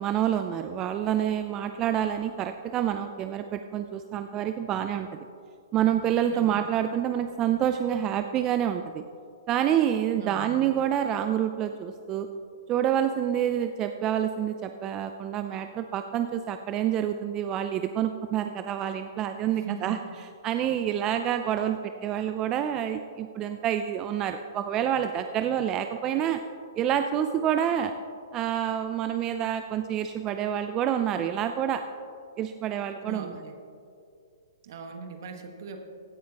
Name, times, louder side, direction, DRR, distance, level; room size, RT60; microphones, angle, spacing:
voice 1, 0.0-5.1 5.7-9.0 9.5-12.3 12.7-20.0 20.4-26.4 26.8-27.9 28.3-31.8 32.4-33.4, right 10 dB, 25° right, 8 dB, 0.4 m, -27 dB
voice 2, 6.2-6.7 10.1-10.7 19.4-20.0 32.9-33.5 34.6-35.8, right 5 dB, 55° right, 5 dB, 1.4 m, -40 dB
16.0 x 10.0 x 2.9 m, 2.4 s
hypercardioid pair, 150°, 2 cm